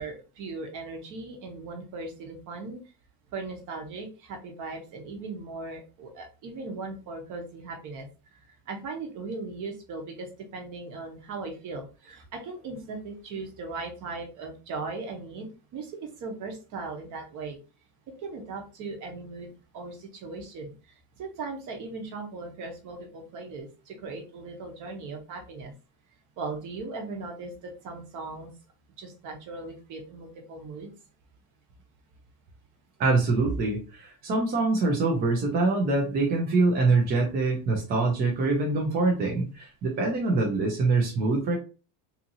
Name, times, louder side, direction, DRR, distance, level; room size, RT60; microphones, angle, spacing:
voice 1, 0.0-2.8 3.3-8.1 8.4-10.3 10.5-17.6 18.2-20.7 21.2-25.7 26.4-28.5 29.0-30.9, right 3 dB, 40° right, 2 dB, 0.9 m, -38 dB
voice 2, 33.0-41.6, right 3 dB, 25° right, 0 dB, 0.3 m, -24 dB
2.6 x 2.6 x 2.6 m, 0.33 s
cardioid pair, 150°, 46 cm